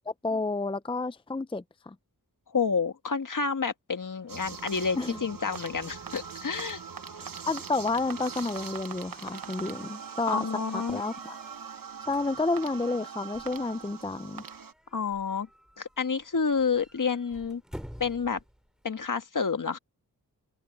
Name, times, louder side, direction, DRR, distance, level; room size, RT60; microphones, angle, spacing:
voice 1, 0.1-1.9 5.0-5.2 7.2-10.5 10.7-11.3 12.1-14.4, left 3 dB, 15° left, 0.6 m, -30 dB
voice 2, 2.5-6.8 10.3-11.0 14.9-15.5 15.8-17.6 18.0-18.4 18.8-19.8, left 5 dB, 55° left, 1.7 m, -29 dB
sound 1, 4.0-19.1, equal, ahead, 3.4 m, -53 dB
sound 2, 4.3-14.7, right 6 dB, 65° right, 1.1 m, -41 dB
open air
wide cardioid pair, 75°, 37 cm